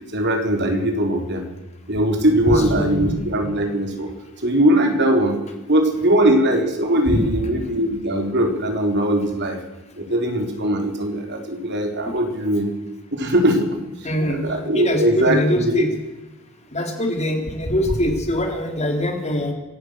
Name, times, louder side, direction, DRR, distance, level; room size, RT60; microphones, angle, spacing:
voice 1, 0.1-1.4 1.9-4.1 4.4-5.4 5.7-9.6 10.0-12.7 13.1-13.8 14.3-15.8, right 1 dB, 50° right, 3 dB, 4.1 m, -20 dB
voice 2, 2.5-3.0 7.1-7.2 12.1-12.2 14.0-14.4 14.7-15.9 16.7-19.5, equal, 30° left, 3 dB, 3.6 m, -23 dB
26.5 x 17.0 x 6.5 m, 1.1 s
head